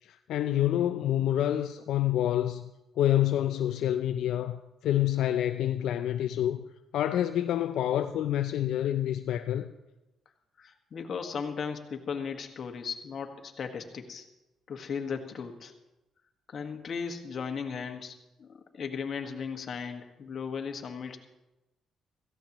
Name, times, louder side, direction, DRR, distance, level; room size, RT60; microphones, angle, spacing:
voice 1, 0.0-2.6 3.0-6.6 6.9-9.7, left 12 dB, 80° left, 0.4 m, -27 dB
voice 2, 10.6-14.3 14.7-15.7 16.5-21.2, left 6 dB, 50° left, 1.6 m, -36 dB
17.0 x 15.0 x 3.0 m
cardioid pair, 90°, 0 cm